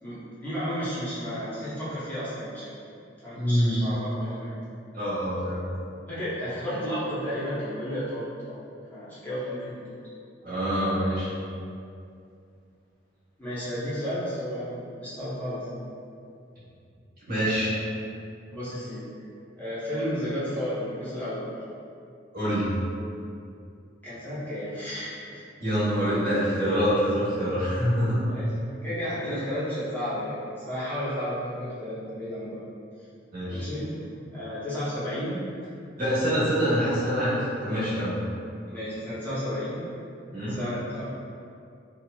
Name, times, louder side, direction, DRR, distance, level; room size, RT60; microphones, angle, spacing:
voice 1, 0.0-2.7 3.2-4.6 6.1-8.6 8.9-10.0 13.4-15.8 17.4-17.7 18.5-19.1 19.6-21.5 24.0-25.4 28.3-32.6 33.5-33.9 34.3-35.4 38.7-39.8 40.5-41.0, equal, 10° left, -13 dB, 0.7 m, -33 dB
voice 2, 3.3-3.8 4.9-5.6 10.4-11.3 17.3-17.7 22.3-22.7 25.6-28.2 33.3-33.7 36.0-38.2 40.3-40.6, equal, 50° right, -11 dB, 1.0 m, -25 dB
2.8 x 2.5 x 2.2 m, 2.5 s
head